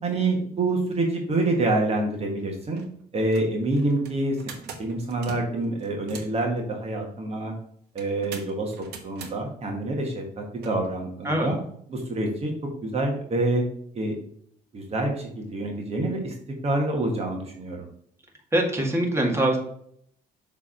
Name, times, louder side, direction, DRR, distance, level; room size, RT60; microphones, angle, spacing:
voice 1, 0.0-2.8 3.1-4.4 4.8-7.5 7.9-8.7 9.0-11.6 11.9-12.5 12.8-13.6 13.9-14.2 14.7-16.3 16.6-17.9, right 2 dB, 40° right, 1 dB, 1.5 m, -26 dB
sound 1, 2.2-2.3 2.7-2.9 3.2-6.4 8.0-9.3 10.6-10.7, right 5 dB, 75° right, 1.4 m, -42 dB
voice 2, 18.5-19.6, right 1 dB, 15° right, 0 dB, 2.0 m, -23 dB
6.7 x 3.6 x 6.3 m, 0.67 s
cardioid pair, 110°, 17 cm